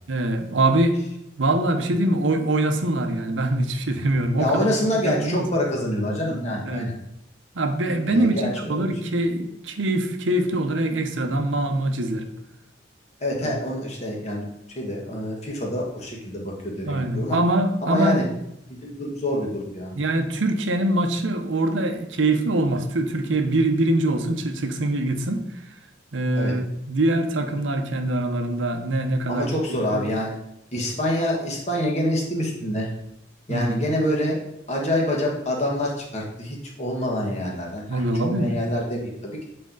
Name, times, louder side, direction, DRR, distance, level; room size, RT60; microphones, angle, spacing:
voice 1, 0.1-1.0 1.4-5.6 6.5-6.9 7.5-12.3 13.4-13.5 16.8-18.2 20.0-25.4 26.1-30.0 33.5-33.8 37.9-38.6, right 1 dB, 90° right, 6 dB, 0.8 m, -23 dB
voice 2, 4.4-6.9 8.1-8.9 13.2-14.5 14.7-17.4 17.8-18.2 18.7-19.9 26.4-26.5 29.3-30.3 30.7-32.9 33.5-34.4 34.7-39.5, left 1 dB, 35° left, -2 dB, 1.6 m, -26 dB
7.6 x 4.5 x 3.9 m, 0.81 s
head